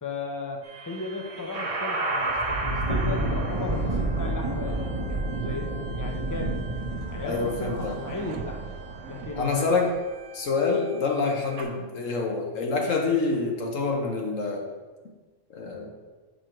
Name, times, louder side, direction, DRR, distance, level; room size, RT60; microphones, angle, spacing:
voice 1, 0.0-6.6 7.1-8.6 9.1-9.8, left 3 dB, 20° left, 2 dB, 0.5 m, -36 dB
sound 1, 0.6-11.6, right 2 dB, 30° right, 0.7 m, -30 dB
sound 2, 6.0-10.4, right 5 dB, 85° right, 1.0 m, -43 dB
voice 2, 7.2-8.0 9.4-9.9 10.3-14.6 15.5-15.9, left 4 dB, 70° left, 1 dB, 1.4 m, -26 dB
6.2 x 4.9 x 4.5 m, 1.3 s
omnidirectional pair, 1.4 m